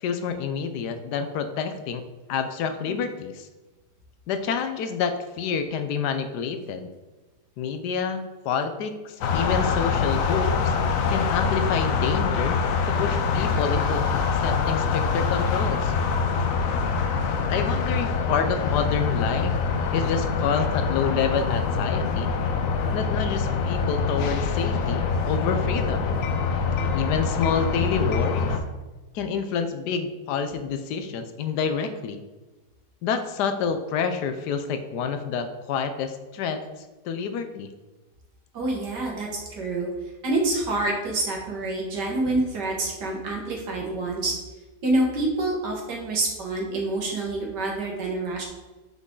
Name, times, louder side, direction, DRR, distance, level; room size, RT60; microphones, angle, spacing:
voice 1, 0.0-2.0 2.3-3.5 4.3-6.9 7.6-10.7 11.1-12.6 12.9-15.9 17.5-19.5 19.9-22.3 22.9-26.1 26.9-28.5 29.1-32.2 33.0-36.6 37.0-37.7, left 6 dB, 80° left, 8 dB, 1.2 m, -28 dB
sound 1, 9.2-28.6, left 5 dB, 65° left, 0.9 m, -25 dB
voice 2, 38.5-39.3 39.6-39.9 40.2-44.3 44.8-48.4, right 2 dB, 85° right, -1 dB, 2.0 m, -27 dB
6.1 x 5.4 x 3.8 m, 1.2 s
omnidirectional pair, 1.8 m